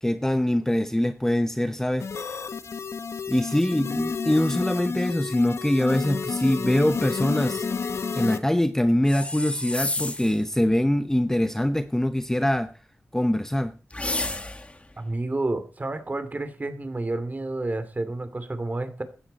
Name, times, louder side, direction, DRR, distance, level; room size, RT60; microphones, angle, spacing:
voice 1, 0.0-2.4 3.3-7.7 8.1-12.7 13.1-13.7 14.2-14.6, left 1 dB, 10° left, 0.8 m, -24 dB
sound 1, 2.0-8.4, left 5 dB, 80° left, 1.1 m, -30 dB
sound 2, 9.1-10.4 13.9-14.8, left 2 dB, 25° left, 1.7 m, -30 dB
voice 2, 15.0-19.0, right 2 dB, 35° right, 2.7 m, -30 dB
16.0 x 13.0 x 4.2 m
cardioid pair, 65°, 5 cm